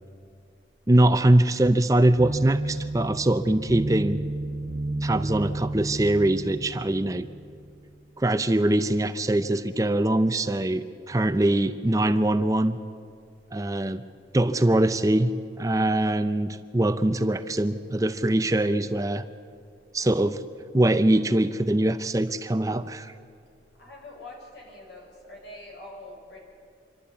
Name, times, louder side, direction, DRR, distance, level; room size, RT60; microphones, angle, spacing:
voice 1, 0.9-4.2 5.0-7.3 8.2-12.8 13.5-14.0 14.3-15.3 15.6-19.3 19.9-20.4 20.7-23.1, right 1 dB, 20° right, 11 dB, 0.5 m, -22 dB
sound 1, 2.2-7.8, right 2 dB, 85° right, 1.0 m, -32 dB
voice 2, 23.8-26.4, left 2 dB, 80° left, -2 dB, 5.9 m, -44 dB
26.5 x 12.0 x 8.4 m, 2.4 s
head